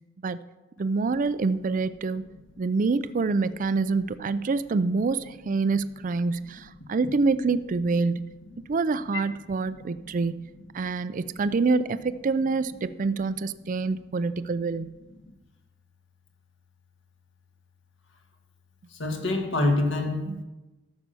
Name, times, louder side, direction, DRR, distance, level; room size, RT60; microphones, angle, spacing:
voice 1, 0.8-2.2 2.6-8.3 8.7-10.4 10.7-15.0 20.3-20.4, right 4 dB, 40° right, 0.4 m, -26 dB
voice 2, 9.7-10.1 15.2-15.3 18.9-20.4, left 2 dB, 65° left, 1.7 m, -27 dB
13.0 x 5.7 x 6.9 m
head